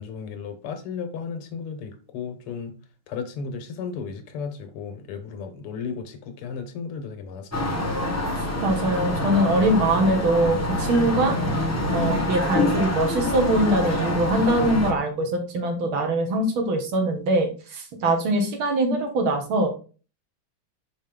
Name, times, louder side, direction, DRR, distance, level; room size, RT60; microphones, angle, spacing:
voice 1, 0.0-2.7 3.1-7.9, left 6 dB, 85° left, 8 dB, 1.9 m, -34 dB
sound 1, 7.5-14.9, left 1 dB, 25° left, 0.3 m, -26 dB
voice 2, 8.6-11.3 11.9-19.7, right 1 dB, 70° right, 4 dB, 2.1 m, -22 dB
5.7 x 5.2 x 3.6 m, 0.35 s
omnidirectional pair, 2.4 m